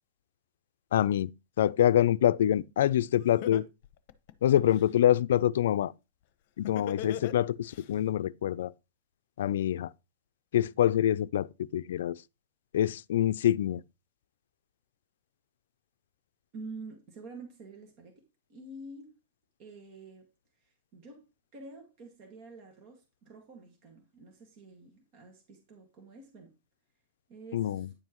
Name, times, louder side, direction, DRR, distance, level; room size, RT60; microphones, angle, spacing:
voice 1, 0.9-1.3 1.6-3.7 4.4-5.9 6.6-8.7 9.4-9.9 10.5-12.2 12.7-13.8 27.5-27.9, left 11 dB, 80° left, 0.4 m, -25 dB
Laughter, 2.9-3.0 3.4-4.9 6.6-7.8, left 10 dB, 50° left, 0.9 m, -38 dB
voice 2, 16.5-19.1 19.6-26.5 27.3-27.9, right 3 dB, 40° right, 1.9 m, -48 dB
10.0 x 7.5 x 3.0 m
supercardioid pair, 155°, 0 cm